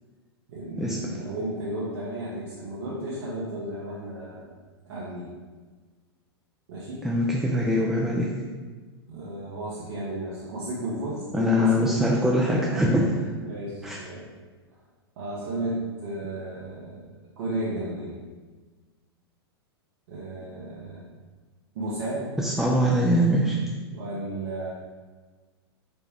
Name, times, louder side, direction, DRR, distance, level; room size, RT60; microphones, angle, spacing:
voice 1, 0.5-4.5 4.8-5.4 6.7-7.1 9.1-12.2 12.5-12.7 13.4-14.3 15.2-17.1 17.4-18.1 20.1-21.0 21.7-22.3 23.9-24.7, right 1 dB, 60° right, -7 dB, 0.8 m, -33 dB
voice 2, 7.0-8.3 11.3-13.1 13.8-14.0 22.4-23.6, equal, 5° right, -3 dB, 0.3 m, -22 dB
4.1 x 2.2 x 3.4 m, 1.4 s
hypercardioid pair, 100°, 14 cm